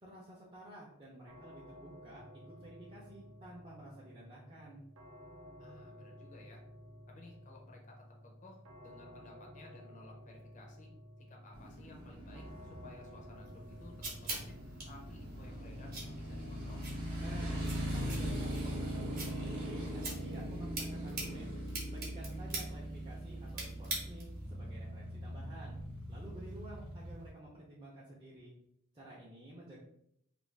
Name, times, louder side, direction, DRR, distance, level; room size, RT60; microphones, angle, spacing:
voice 1, 0.0-4.8 17.2-21.5 21.9-25.8 26.1-28.5 28.9-29.8, right 1 dB, 25° right, -6 dB, 0.5 m, -52 dB
sound 1, 1.3-20.2, equal, 70° right, 0.6 m, -55 dB
voice 2, 5.6-6.6 7.1-10.9 11.3-13.9 14.2-14.6 14.9-16.9 22.3-22.4, left 3 dB, 35° left, 0 dB, 0.4 m, -57 dB
Motorcycle, 11.5-27.3, equal, 85° right, 1.0 m, -41 dB
sound 2, 13.4-24.5, right 3 dB, 45° right, 0.9 m, -45 dB
2.5 x 2.2 x 3.2 m, 0.73 s
head